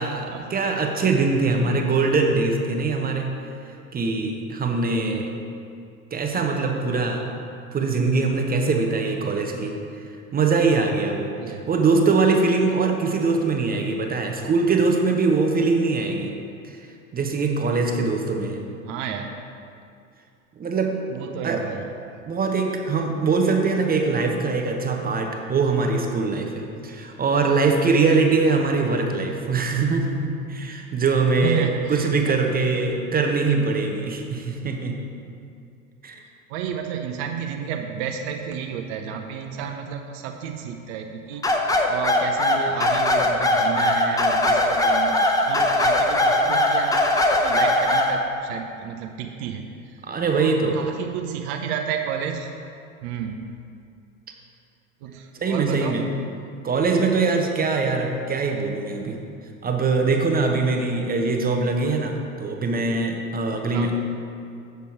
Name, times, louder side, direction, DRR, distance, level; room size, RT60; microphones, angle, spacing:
voice 1, 0.0-3.3 3.9-5.3 6.1-7.2 7.7-9.8 10.3-16.3 16.6-16.8 17.1-18.6 20.6-21.0 21.4-21.6 22.2-35.0 36.0-36.2 50.0-50.8 55.3-56.0 56.6-59.2 59.6-64.0, right 4 dB, 20° right, 3 dB, 0.9 m, -22 dB
voice 2, 11.4-11.7 18.9-19.4 21.1-22.2 31.4-32.4 36.5-49.7 50.4-52.5 53.0-53.4 55.0-56.0 63.7-63.9, right 7 dB, 50° right, 4 dB, 0.7 m, -31 dB
sound 1, 41.4-48.1, left 1 dB, 10° left, 0.7 m, -20 dB
8.1 x 6.8 x 4.6 m, 2.4 s
figure-of-eight pair, 70°, 41 cm